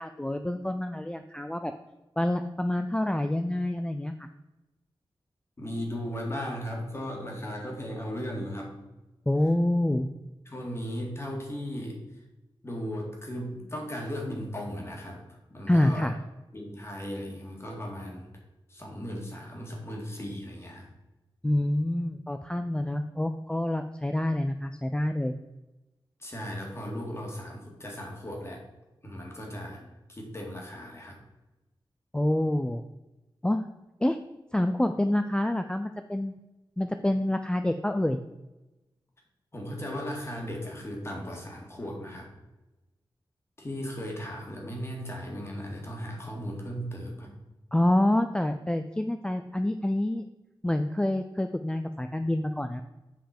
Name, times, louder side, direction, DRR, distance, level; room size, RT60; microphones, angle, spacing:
voice 1, 0.0-1.7 2.2-4.3 9.3-10.1 15.7-16.1 21.4-25.3 32.1-32.8 33.4-33.7 34.0-34.2 34.5-36.3 36.8-38.2 47.7-50.2 50.6-52.8, left 1 dB, 10° left, 7 dB, 0.4 m, -27 dB
voice 2, 5.6-8.8 10.5-12.0 12.6-16.1 16.5-18.3 18.7-20.9 26.2-28.6 29.0-29.8 30.1-31.2 39.5-42.3 43.6-47.4, equal, 30° left, 0 dB, 2.0 m, -36 dB
7.8 x 5.3 x 4.3 m, 1.0 s
wide cardioid pair, 115°, 9 cm